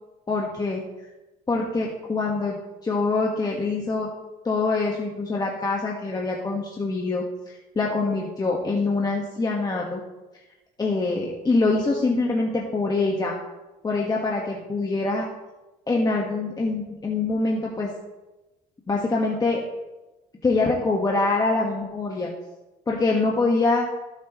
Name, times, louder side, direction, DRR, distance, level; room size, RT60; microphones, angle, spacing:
voice 1, 0.3-0.8 1.5-4.1 4.4-10.0 10.8-13.4 13.8-15.3 15.9-17.9 18.9-19.6 20.4-22.3 22.9-23.9, left 3 dB, 25° left, -1 dB, 1.5 m, -24 dB
18.0 x 8.2 x 3.1 m, 1.1 s
cardioid pair, 110°, 17 cm